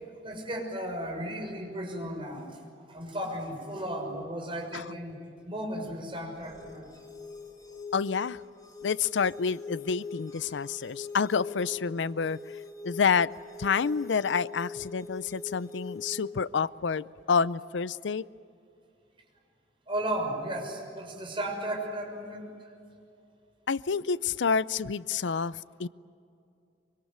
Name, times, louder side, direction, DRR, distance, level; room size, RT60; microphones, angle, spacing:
voice 1, 0.2-2.6 2.9-5.2 5.4-6.9 19.9-22.5, right 1 dB, 30° right, 6.2 m, -35 dB
sound 1, 6.4-16.4, left 4 dB, 20° left, 2.9 m, -43 dB
voice 2, 7.9-8.4 8.8-13.3 13.6-18.3 23.7-25.9, left 5 dB, 90° left, 0.5 m, -28 dB
25.0 x 24.5 x 9.4 m
head